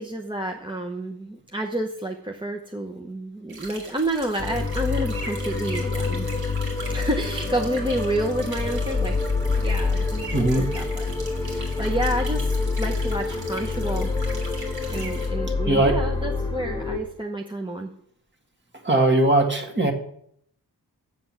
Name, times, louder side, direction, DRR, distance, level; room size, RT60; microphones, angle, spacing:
voice 1, 0.0-6.3 6.9-9.2 9.6-11.1 11.4-12.5 12.8-14.1 14.9-17.9, right 1 dB, 10° right, 2 dB, 0.8 m, -29 dB
sound 1, 3.5-15.3, right 2 dB, 65° right, 3.2 m, -40 dB
sound 2, 4.4-17.0, left 3 dB, 10° left, 1.3 m, -27 dB
voice 2, 10.3-10.7 15.7-16.0 18.8-19.9, right 2 dB, 30° right, 4 dB, 1.8 m, -20 dB
7.9 x 7.7 x 7.5 m, 0.68 s
wide cardioid pair, 125°, 40 cm